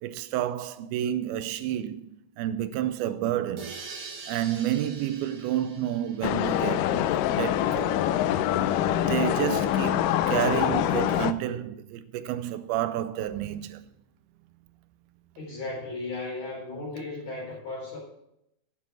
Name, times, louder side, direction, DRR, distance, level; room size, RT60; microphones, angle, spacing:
voice 1, 0.0-2.1 2.4-3.8 4.3-8.1 8.9-13.8, right 11 dB, 85° right, 2.5 m, -30 dB
sound 1, 3.6-7.3, right 4 dB, 55° right, 1.6 m, -44 dB
sound 2, 6.2-11.3, left 11 dB, 85° left, 1.9 m, -25 dB
voice 2, 15.4-18.0, left 2 dB, 45° left, 5.2 m, -35 dB
10.5 x 7.8 x 6.2 m
omnidirectional pair, 4.4 m